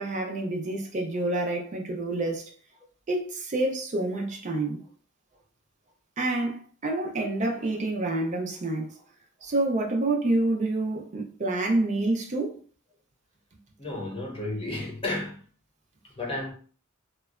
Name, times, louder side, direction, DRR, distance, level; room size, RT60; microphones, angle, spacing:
voice 1, 0.0-2.5 3.1-4.9 6.2-8.9 9.4-12.5, right 2 dB, 35° right, 0.4 m, -28 dB
voice 2, 13.8-15.4 16.0-16.5, left 2 dB, 25° left, 0.7 m, -32 dB
2.8 x 2.1 x 2.3 m
head